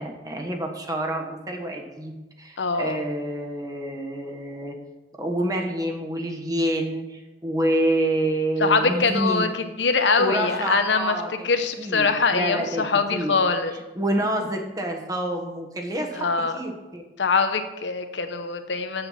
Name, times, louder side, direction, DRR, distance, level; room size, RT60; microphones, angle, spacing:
voice 1, 0.0-4.8 5.2-9.5 10.2-11.5 11.8-13.3 13.9-16.3 16.5-17.0, right 1 dB, 20° right, 2 dB, 1.3 m, -27 dB
voice 2, 2.6-3.0 8.6-11.2 11.4-13.7 16.1-16.6 17.2-19.1, left 4 dB, 85° left, 7 dB, 0.9 m, -23 dB
7.9 x 7.8 x 5.7 m, 1.1 s
head